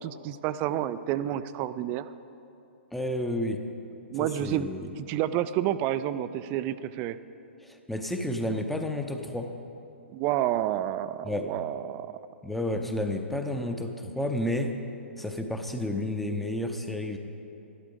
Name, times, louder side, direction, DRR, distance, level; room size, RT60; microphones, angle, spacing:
voice 1, 0.0-2.1 4.1-4.7 5.0-7.2 10.1-12.1, right 12 dB, 25° right, 14 dB, 0.3 m, -29 dB
voice 2, 2.9-3.6 4.1-4.9 7.6-9.5 11.2-11.5 12.4-14.7 15.2-17.2, left 1 dB, ahead, 5 dB, 0.7 m, -31 dB
12.5 x 11.5 x 5.1 m, 2.9 s
figure-of-eight pair, 115°, 6 cm